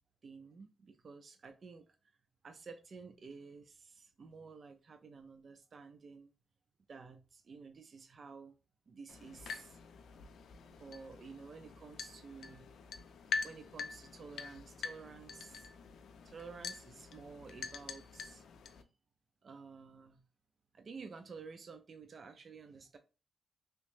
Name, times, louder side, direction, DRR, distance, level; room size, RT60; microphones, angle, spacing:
voice 1, 0.2-2.2 2.4-6.3 6.9-8.5 8.9-9.8 10.7-12.7 13.4-15.7 16.2-18.4 19.4-20.2 20.7-23.0, right 5 dB, 50° right, 0.3 m, -52 dB
sound 1, 9.1-18.8, left 5 dB, 90° left, 0.4 m, -45 dB
3.0 x 2.6 x 3.2 m
cardioid pair, 115°, 0 cm